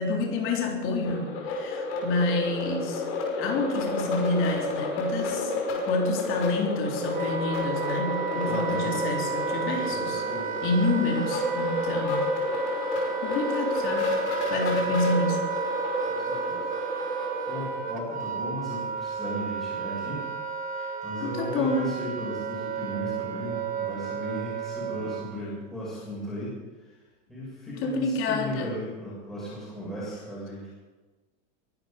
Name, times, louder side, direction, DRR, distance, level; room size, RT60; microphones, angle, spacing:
voice 1, 0.0-3.0 3.4-10.2 10.6-12.2 13.2-14.2 14.5-15.4 20.8-20.9 21.2-21.9 27.7-28.7, left 2 dB, 30° left, 1 dB, 3.5 m, -28 dB
sound 1, 1.0-17.7, left 2 dB, 60° left, 5.7 m, -31 dB
Wind instrument woodwind instrument, 6.6-25.4, right 6 dB, 20° right, 1.3 m, -33 dB
voice 2, 8.5-9.0 9.9-10.6 16.0-16.7 17.5-20.2 21.0-26.9 27.3-30.8, equal, ahead, -9 dB, 6.6 m, -36 dB
22.5 x 12.0 x 5.2 m, 1.3 s
supercardioid pair, 165°, 38 cm